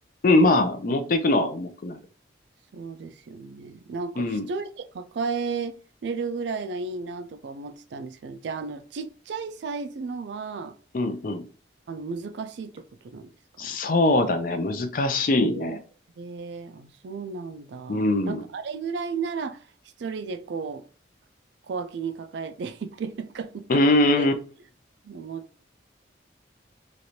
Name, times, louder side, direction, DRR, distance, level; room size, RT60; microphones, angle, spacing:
voice 1, 0.2-2.0 4.2-4.5 10.9-11.4 13.6-15.8 17.9-18.4 23.7-24.3, left 2 dB, 45° left, 0.4 m, -22 dB
voice 2, 2.7-10.8 11.9-13.3 13.6-13.8 15.4-15.8 16.2-19.6 20.0-20.9 21.7-23.8 24.2-24.3 25.0-25.6, right 5 dB, 65° right, 0.3 m, -34 dB
3.1 x 2.5 x 2.8 m
head